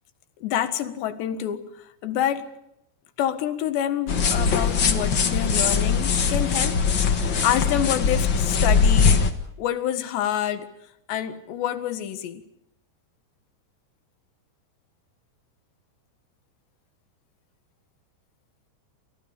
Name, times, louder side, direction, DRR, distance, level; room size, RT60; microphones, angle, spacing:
voice 1, 0.4-1.7 2.0-2.5 3.2-9.3 9.6-10.7 11.1-12.4, left 10 dB, 85° left, 10 dB, 3.8 m, -27 dB
sound 1, 4.1-9.3, left 5 dB, 60° left, 1.2 m, -21 dB
29.0 x 28.0 x 5.1 m, 0.81 s
omnidirectional pair, 4.9 m